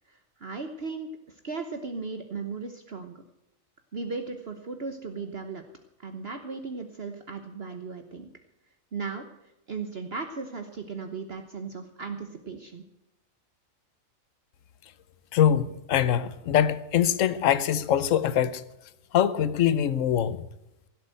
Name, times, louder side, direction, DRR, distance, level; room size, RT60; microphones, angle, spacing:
voice 1, 0.1-3.2 3.9-5.6 6.0-8.3 8.9-9.2 9.7-12.8, right 4 dB, 50° right, 1.3 m, -36 dB
voice 2, 15.3-18.6 19.1-20.4, left 9 dB, 70° left, 1.2 m, -23 dB
16.5 x 8.3 x 7.7 m
omnidirectional pair, 1.4 m